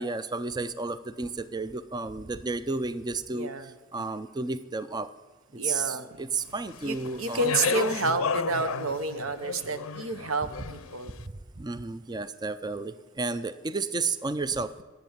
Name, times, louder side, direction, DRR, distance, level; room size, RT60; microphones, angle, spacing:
voice 1, 0.0-5.1 5.5-7.5 11.6-14.8, right 3 dB, 20° right, 14 dB, 0.4 m, -32 dB
voice 2, 3.3-3.7 5.6-6.2 6.8-11.1, right 3 dB, 75° right, 10 dB, 0.9 m, -30 dB
Speech, 6.7-11.0, left 6 dB, 75° left, 0.5 m, -33 dB
19.5 x 8.5 x 7.3 m, 1.3 s
head